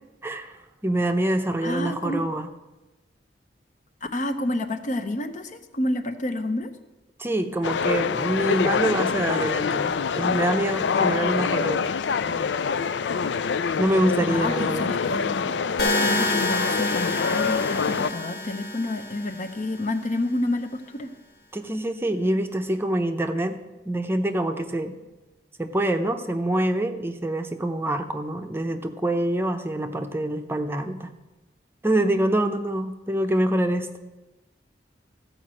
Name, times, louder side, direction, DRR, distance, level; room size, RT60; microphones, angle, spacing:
voice 1, 0.2-0.6 0.8-2.5 7.2-11.9 13.8-14.9 21.5-23.6 23.9-25.0 25.6-31.1 31.8-33.9, right 1 dB, 15° right, 6 dB, 0.6 m, -25 dB
voice 2, 1.6-2.3 4.1-6.8 14.2-15.6 16.0-21.1, left 1 dB, 45° left, 8 dB, 0.8 m, -29 dB
sound 1, 7.6-18.1, left 6 dB, 85° left, 0.4 m, -25 dB
sound 2, 15.8-19.8, left 1 dB, 65° left, 1.6 m, -28 dB
14.0 x 5.1 x 7.5 m, 1.1 s
head